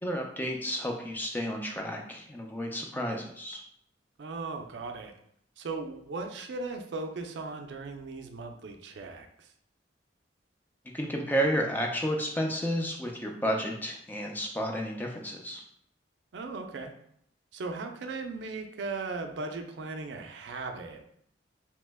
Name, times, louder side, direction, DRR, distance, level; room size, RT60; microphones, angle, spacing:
voice 1, 0.0-3.6 10.9-15.6, equal, 10° left, 1 dB, 0.3 m, -31 dB
voice 2, 4.2-5.1 5.6-9.5 16.3-16.9 17.5-21.0, right 3 dB, 70° right, 5 dB, 0.4 m, -37 dB
2.9 x 2.1 x 3.3 m, 0.70 s
head